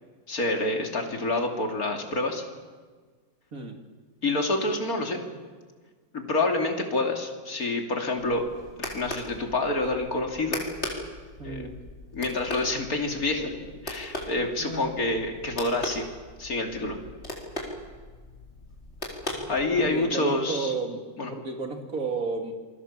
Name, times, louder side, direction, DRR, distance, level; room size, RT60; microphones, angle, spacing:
voice 1, 0.3-2.4 4.2-5.2 6.1-8.4 8.8-10.6 11.4-11.7 12.1-16.0 16.4-17.0 19.5-20.7 21.2-21.3, left 2 dB, 55° left, 3 dB, 3.3 m, -27 dB
sound 1, 8.1-20.1, left 1 dB, 35° left, 4.3 m, -39 dB
voice 2, 11.4-11.8 14.6-14.9 19.3-22.5, right 3 dB, 50° right, 4 dB, 3.0 m, -33 dB
27.5 x 21.5 x 7.5 m, 1.5 s
omnidirectional pair, 1.9 m